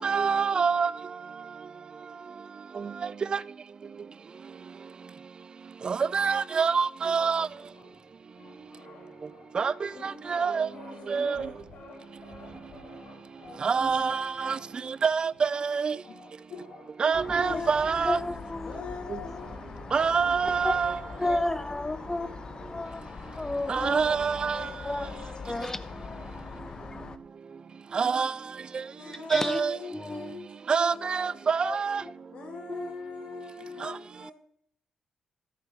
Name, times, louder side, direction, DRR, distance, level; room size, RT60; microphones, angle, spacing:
voice 1, 0.0-4.1 5.3-16.1 17.0-18.2 19.1-21.0 21.3-21.4 22.6-22.8 23.3-23.4 23.7-25.1 25.6-25.7 26.3-32.5 33.2-33.4 33.8-34.3, right 5 dB, 45° right, 0.4 m, -29 dB
sound 1, 7.0-26.4, left 3 dB, 85° left, 2.0 m, -52 dB
voice 2, 10.7-11.5 16.1-16.2 16.5-16.6 17.4-17.8 18.7-19.5 20.2-20.4 20.9-21.3 23.7-24.2 24.4-25.9 29.0-30.5 30.8-31.4 32.3-34.3, left 4 dB, 65° left, 2.4 m, -42 dB
sound 2, 17.1-27.2, left 4 dB, 40° left, 0.6 m, -42 dB
voice 3, 18.0-18.7 19.2-19.4 20.6-20.7 21.2-22.3 22.7-23.0 23.3-24.1 24.8-25.1 25.4-25.8 29.3-29.6 29.9-30.3 31.6-32.1 32.7-32.9 33.9-34.0, left 2 dB, 15° left, 0.9 m, -32 dB
13.0 x 4.4 x 5.7 m
cardioid pair, 80°, 2 cm